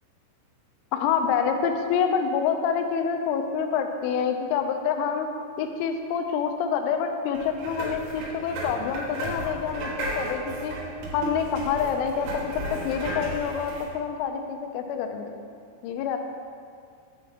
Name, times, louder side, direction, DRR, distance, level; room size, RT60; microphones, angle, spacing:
voice 1, 0.9-5.3 5.6-10.8 11.1-15.4 15.8-16.2, left 7 dB, 85° left, 5 dB, 3.0 m, -27 dB
sound 1, 7.3-13.9, right 1 dB, 90° right, 4.0 m, -34 dB
8.5 x 3.7 x 6.9 m, 2.2 s
omnidirectional pair, 5.6 m